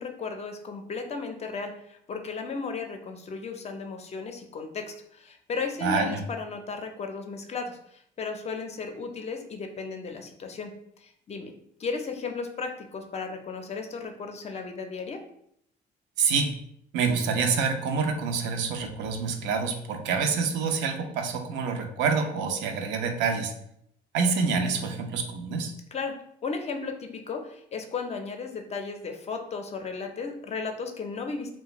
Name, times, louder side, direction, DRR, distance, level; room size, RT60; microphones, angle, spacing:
voice 1, 0.0-10.7 11.0-11.5 11.8-15.2 25.9-31.6, left 4 dB, 35° left, 5 dB, 0.5 m, -35 dB
voice 2, 5.8-6.2 16.2-16.6 16.9-23.5 24.1-25.7, right 5 dB, 85° right, 5 dB, 0.4 m, -27 dB
2.4 x 2.2 x 2.9 m, 0.72 s
cardioid pair, 85°, 18 cm